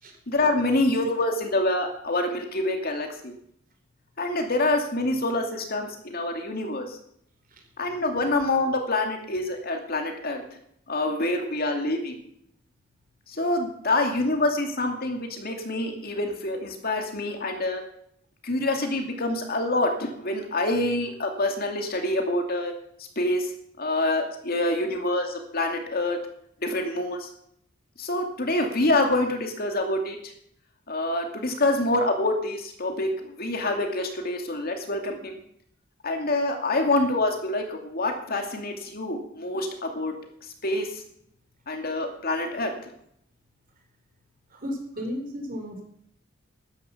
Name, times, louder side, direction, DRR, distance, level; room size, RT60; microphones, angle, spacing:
voice 1, 0.3-3.3 4.2-7.0 7.8-10.4 10.9-12.2 13.3-17.8 18.4-22.7 23.2-23.5 23.8-26.2 26.6-27.3 28.0-30.3 30.9-35.3 36.0-40.1 40.6-41.0 41.7-42.9, left 2 dB, 50° left, 4 dB, 2.4 m, -26 dB
voice 2, 44.5-45.9, equal, 45° right, 3 dB, 3.9 m, -34 dB
13.0 x 10.5 x 7.1 m, 0.70 s
head